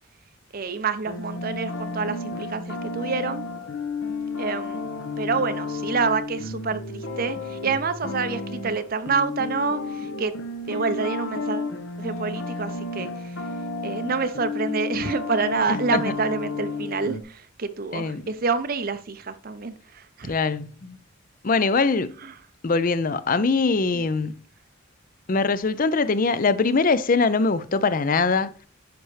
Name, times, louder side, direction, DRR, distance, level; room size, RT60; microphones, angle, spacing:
voice 1, 0.5-3.4 4.4-4.8 5.2-10.3 10.7-11.7 12.0-13.4 13.8-20.4, right 4 dB, 45° right, 0.6 m, -27 dB
sound 1, 1.1-17.2, left 3 dB, 65° left, 1.2 m, -32 dB
voice 2, 15.7-16.1 17.9-18.2 20.3-21.0 21.4-22.1 22.6-24.4 25.3-28.5, left 4 dB, 40° left, 0.5 m, -22 dB
10.5 x 5.5 x 3.2 m
head